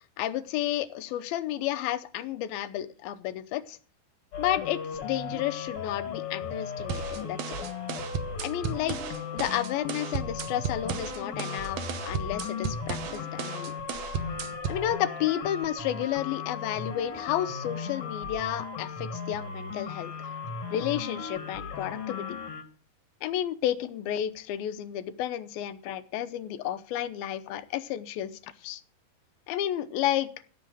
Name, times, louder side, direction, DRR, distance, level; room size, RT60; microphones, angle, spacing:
voice 1, 0.2-3.8 4.4-7.6 8.4-9.0 9.3-13.7 14.7-20.1 20.7-22.4 23.2-28.8 29.5-30.3, left 12 dB, 90° left, 11 dB, 2.7 m, -31 dB
sound 1, 4.3-22.6, left 5 dB, 50° left, 1.9 m, -37 dB
sound 2, 6.9-14.9, right 6 dB, 70° right, 1.5 m, -35 dB
15.5 x 6.9 x 6.3 m, 0.41 s
omnidirectional pair, 4.2 m